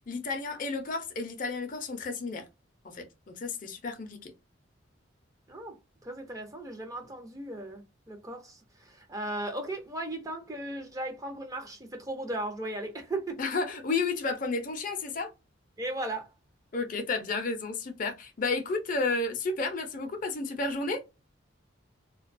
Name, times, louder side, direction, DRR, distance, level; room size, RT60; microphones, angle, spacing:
voice 1, 0.1-2.4 2.8-4.3 13.4-15.3 16.7-21.0, left 3 dB, 45° left, 0.5 m, -32 dB
voice 2, 5.5-13.4 15.8-16.3, right 1 dB, 15° right, 0.5 m, -37 dB
2.3 x 2.2 x 2.5 m
head